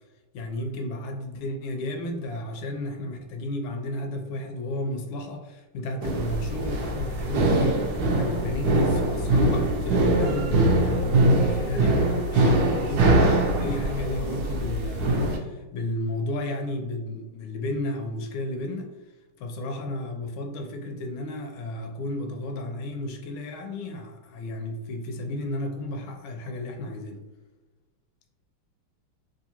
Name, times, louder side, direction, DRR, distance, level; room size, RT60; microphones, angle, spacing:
voice 1, 0.3-18.9 19.4-27.2, left 1 dB, 75° left, 3 dB, 1.3 m, -33 dB
sound 1, 6.0-15.4, right 2 dB, 75° right, 0.9 m, -23 dB
3.7 x 2.5 x 2.8 m, 1.1 s
omnidirectional pair, 2.4 m